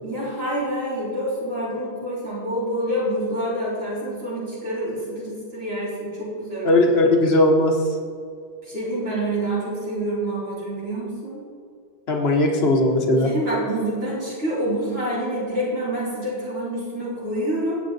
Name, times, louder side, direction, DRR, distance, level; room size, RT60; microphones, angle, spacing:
voice 1, 0.0-6.8 8.6-11.4 13.2-17.7, right 1 dB, 70° right, -9 dB, 3.8 m, -27 dB
voice 2, 6.6-7.8 12.1-13.3, left 2 dB, 75° left, 2 dB, 1.5 m, -18 dB
18.0 x 8.2 x 4.0 m, 2.3 s
omnidirectional pair, 1.1 m